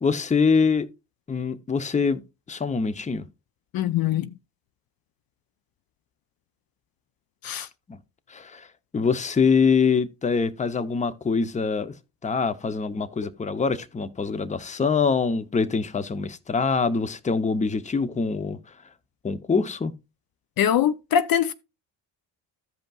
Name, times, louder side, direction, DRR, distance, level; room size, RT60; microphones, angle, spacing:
voice 1, 0.0-0.9 1.3-2.2 2.5-3.2 7.9-8.0 8.3-8.7 8.9-11.9 12.2-18.6 19.2-19.9, left 5 dB, 15° left, 0.7 m, -24 dB
voice 2, 3.7-4.3 7.4-7.7 20.6-21.5, left 9 dB, 55° left, 0.6 m, -22 dB
15.0 x 5.2 x 2.3 m
cardioid pair, 90°, 44 cm